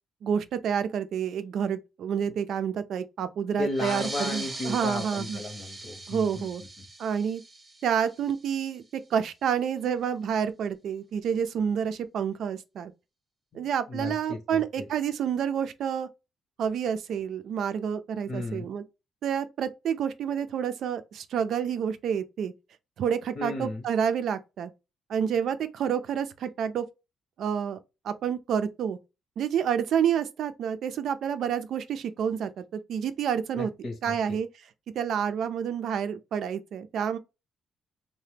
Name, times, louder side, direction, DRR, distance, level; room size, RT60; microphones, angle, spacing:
voice 1, 0.2-5.4 6.1-6.6 7.0-7.4 7.8-12.9 13.5-16.1 16.6-18.8 19.2-22.5 23.0-24.7 25.1-26.8 27.4-27.8 28.0-29.0 29.4-33.7 34.0-34.5 34.9-37.2, right 8 dB, 70° right, 0.4 m, -29 dB
voice 2, 3.6-6.5 6.8-6.9 13.5-14.9 18.3-18.7 23.4-23.8 33.5-34.4, left 2 dB, 50° left, 0.9 m, -35 dB
sound 1, 3.7-8.8, right 2 dB, 30° right, 0.6 m, -40 dB
2.8 x 2.1 x 3.3 m
cardioid pair, 90°, 0 cm